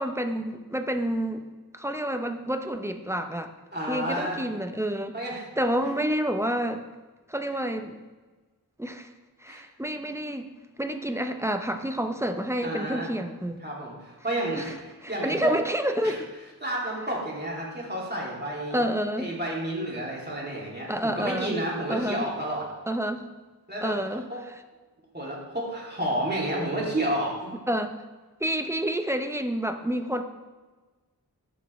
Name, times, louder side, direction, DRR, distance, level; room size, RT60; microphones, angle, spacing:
voice 1, 0.0-1.4 1.7-3.5 3.9-5.1 5.6-6.8 7.3-8.0 8.8-9.1 9.4-10.5 10.8-13.6 14.5-14.7 15.0-16.2 18.7-19.3 20.9-21.5 21.9-22.2 22.9-23.2 23.8-24.3 27.7-27.9 28.4-30.2, equal, 5° right, 6 dB, 0.7 m, -28 dB
voice 2, 3.7-4.4 5.1-5.5 9.5-9.6 12.6-13.1 13.6-14.7 15.1-15.5 16.0-16.2 16.6-18.8 19.2-22.7 23.7-23.9 24.3-24.4 25.1-27.5, right 1 dB, 25° right, -4 dB, 2.7 m, -30 dB
13.5 x 5.9 x 3.2 m, 1.3 s
wide cardioid pair, 60°, 38 cm